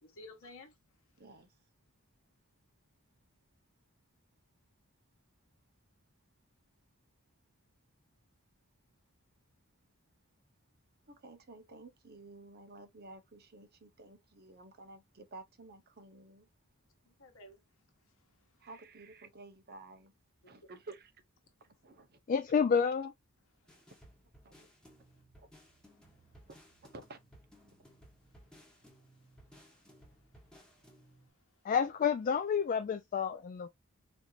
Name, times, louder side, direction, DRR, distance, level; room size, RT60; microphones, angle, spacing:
voice 1, 0.0-0.7 17.0-17.6 29.0-29.1 29.5-29.6 30.7-31.3, left 2 dB, 65° left, 1.1 m, -54 dB
voice 2, 1.2-1.5 11.1-16.5 18.6-20.1 20.4-21.1 21.6-22.2 24.4-24.7 25.4-25.5 26.5-26.6 26.9-27.2 27.6-27.7, right 2 dB, 45° right, 0.8 m, -52 dB
voice 3, 22.3-23.1 31.6-33.7, left 6 dB, 40° left, 0.3 m, -29 dB
sound 1, 23.7-31.3, equal, 5° left, 1.3 m, -60 dB
4.3 x 2.7 x 2.4 m
head